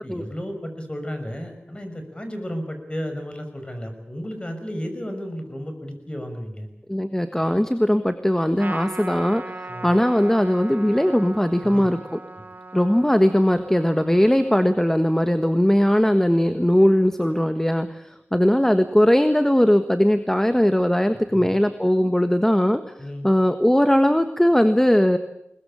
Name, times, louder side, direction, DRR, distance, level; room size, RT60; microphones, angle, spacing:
voice 1, 0.0-6.7 9.7-9.9 11.6-11.9 21.3-21.5 23.0-23.3, equal, 25° left, 6 dB, 5.9 m, -33 dB
voice 2, 6.9-9.4 9.8-12.0 12.7-22.8 23.2-25.2, equal, 10° left, 9 dB, 1.5 m, -19 dB
Trumpet, 8.6-15.3, right 2 dB, 45° right, 2.3 m, -39 dB
22.0 x 20.5 x 8.7 m, 0.79 s
wide cardioid pair, 55°, 4 cm